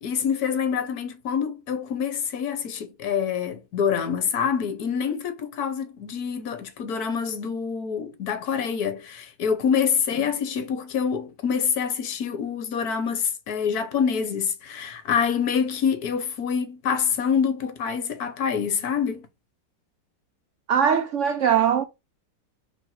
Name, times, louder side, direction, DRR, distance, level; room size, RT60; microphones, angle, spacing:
voice 1, 0.0-19.3, left 7 dB, 60° left, 1.4 m, -26 dB
voice 2, 20.7-21.8, right 8 dB, 75° right, 0.7 m, -21 dB
5.2 x 3.3 x 5.6 m
omnidirectional pair, 1.9 m